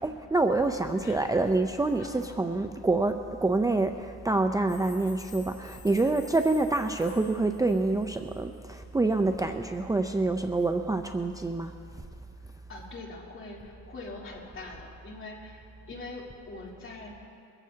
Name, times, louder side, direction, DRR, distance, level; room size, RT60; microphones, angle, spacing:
voice 1, 0.0-11.7, right 2 dB, 10° right, 6 dB, 0.5 m, -27 dB
voice 2, 1.9-2.2 5.9-6.1 12.4-17.3, left 2 dB, 45° left, -3 dB, 3.4 m, -43 dB
sound 1, 4.7-8.6, left 7 dB, 70° left, 3.8 m, -52 dB
22.5 x 15.0 x 2.8 m, 2.4 s
cardioid pair, 90°, 30 cm